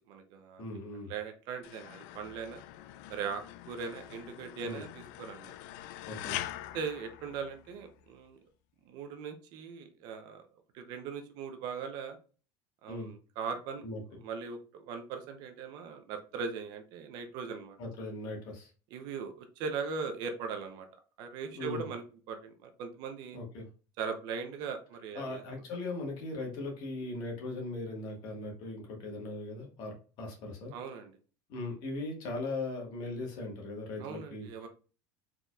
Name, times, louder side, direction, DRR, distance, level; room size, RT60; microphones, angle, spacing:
voice 1, 0.0-0.6 1.1-2.6 3.1-5.5 6.7-8.4 8.9-10.4 10.7-12.2 12.8-13.8 14.2-17.8 18.9-20.9 21.2-23.4 24.0-25.4 30.7-31.1 34.0-34.7, right 5 dB, 45° right, 6 dB, 0.6 m, -39 dB
voice 2, 0.6-1.1 4.6-4.8 6.1-6.4 12.9-13.1 13.8-14.0 17.8-18.7 21.5-21.8 23.3-23.7 25.1-30.7 31.5-34.7, left 2 dB, 45° left, 0 dB, 1.5 m, -39 dB
sound 1, 1.6-7.9, left 13 dB, 60° left, 0.4 m, -44 dB
4.5 x 3.9 x 2.3 m, 0.37 s
cardioid pair, 180°, 10 cm